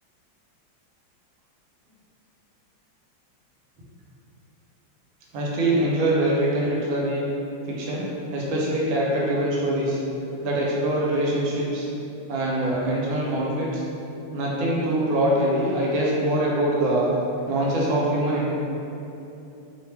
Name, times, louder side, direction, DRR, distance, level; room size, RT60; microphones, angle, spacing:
voice 1, 5.3-7.3 7.7-10.0 10.4-11.9 12.3-13.8 14.3-17.1 17.5-18.5, right 1 dB, 80° right, -4 dB, 1.4 m, -23 dB
3.2 x 2.1 x 3.2 m, 2.9 s
omnidirectional pair, 2.2 m